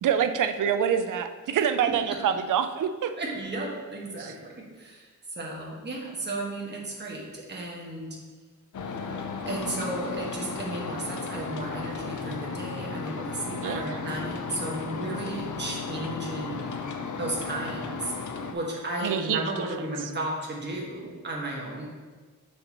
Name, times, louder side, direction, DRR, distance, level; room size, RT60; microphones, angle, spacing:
voice 1, 0.0-3.1 4.2-4.3 13.6-14.0 19.0-19.4, right 8 dB, 75° right, 9 dB, 0.5 m, -26 dB
voice 2, 3.2-5.1 5.4-8.2 9.4-16.8 17.2-18.1 18.5-22.0, right 1 dB, 35° right, -3 dB, 1.4 m, -34 dB
sound 1, 8.7-18.5, left 4 dB, 70° left, 0.6 m, -35 dB
6.6 x 6.4 x 3.0 m, 1.4 s
wide cardioid pair, 120°, 31 cm